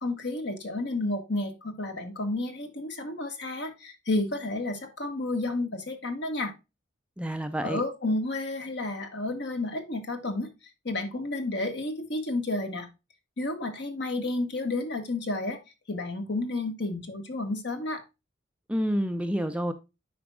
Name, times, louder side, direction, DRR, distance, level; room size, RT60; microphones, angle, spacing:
voice 1, 0.0-6.5 7.6-10.5 10.8-12.9 13.4-15.6 15.9-18.0, left 2 dB, 55° left, 6 dB, 1.3 m, -31 dB
voice 2, 7.2-7.8 18.7-19.7, equal, 5° right, 8 dB, 0.4 m, -28 dB
9.6 x 5.1 x 2.3 m, 0.25 s
head